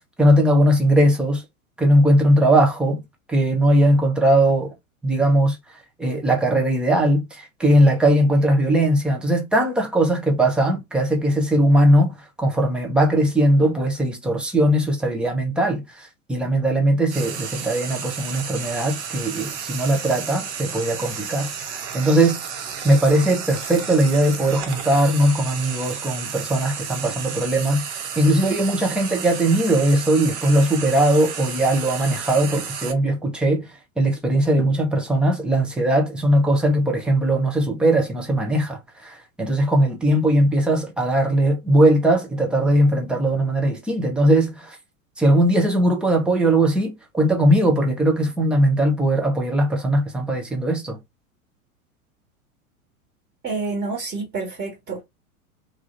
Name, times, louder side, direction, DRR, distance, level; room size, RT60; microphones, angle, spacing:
voice 1, 0.2-1.4 1.8-3.0 3.3-4.7 5.0-5.6 6.0-22.4 22.8-33.7 34.0-44.8 45.2-51.0, right 1 dB, 5° right, 0.4 m, -19 dB
Frying (food), 17.1-32.9, right 7 dB, 50° right, 0.8 m, -32 dB
voice 2, 53.4-55.0, right 4 dB, 20° right, 1.2 m, -28 dB
3.1 x 2.3 x 2.4 m
figure-of-eight pair, 90°, 43 cm